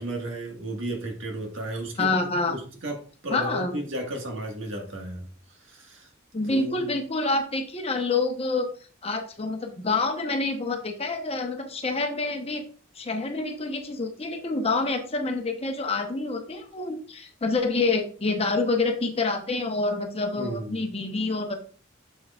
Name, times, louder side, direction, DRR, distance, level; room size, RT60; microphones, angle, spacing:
voice 1, 0.0-6.1 6.4-6.8 20.3-20.9, right 1 dB, 65° right, 1.7 m, -34 dB
voice 2, 2.0-2.6 3.3-3.8 6.3-8.7 9.0-12.6 13.0-21.6, left 3 dB, 30° left, 0.9 m, -27 dB
7.7 x 6.4 x 2.4 m
head